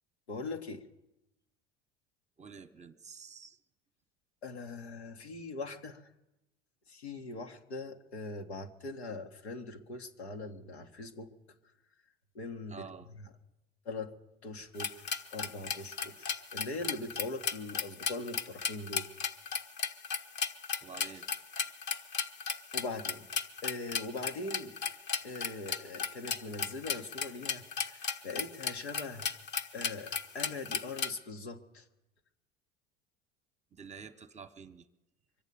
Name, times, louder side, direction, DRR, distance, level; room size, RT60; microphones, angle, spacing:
voice 1, 0.3-0.8 4.4-6.0 6.9-11.3 12.3-12.8 13.8-14.1 14.4-19.0 22.7-23.3 23.6-24.8 25.2-29.3 29.7-31.8, left 3 dB, 85° left, 3 dB, 1.5 m, -41 dB
voice 2, 2.4-3.6 12.7-13.1 20.8-21.2 33.7-34.9, right 6 dB, 20° right, 8 dB, 1.0 m, -49 dB
sound 1, 14.8-31.1, left 6 dB, 35° left, 1.0 m, -35 dB
24.0 x 8.3 x 6.9 m, 0.94 s
hypercardioid pair, 80°, 32 cm